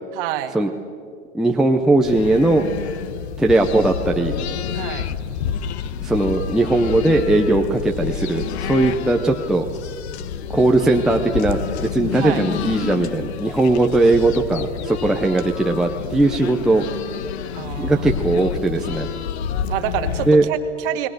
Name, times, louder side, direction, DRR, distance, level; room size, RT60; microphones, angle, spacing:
voice 1, 0.1-0.6 4.7-5.1 12.1-12.4 17.5-18.1 19.7-21.1, right 13 dB, 45° right, 7 dB, 2.0 m, -27 dB
voice 2, 1.3-2.7 3.4-4.4 6.0-9.7 10.5-16.8 17.8-19.1 20.3-20.5, right 2 dB, ahead, 2 dB, 0.6 m, -18 dB
sound 1, 2.0-20.3, left 8 dB, 60° left, 1.2 m, -29 dB
29.0 x 20.5 x 6.7 m, 2.2 s
hypercardioid pair, 140°, 38 cm